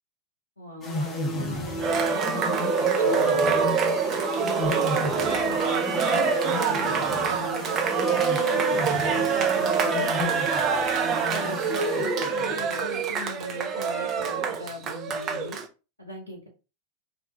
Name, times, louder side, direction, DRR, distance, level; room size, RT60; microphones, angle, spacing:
voice 1, 0.6-3.8 4.3-7.7 8.1-10.5 11.3-15.6 16.0-16.5, equal, 80° left, -1 dB, 0.7 m, -39 dB
sound 1, 0.8-12.7, left 1 dB, 20° left, 0.7 m, -33 dB
Cheering, 1.8-15.6, right 5 dB, 30° right, 0.5 m, -25 dB
3.4 x 2.3 x 3.0 m, 0.30 s
figure-of-eight pair, 90°, 0 cm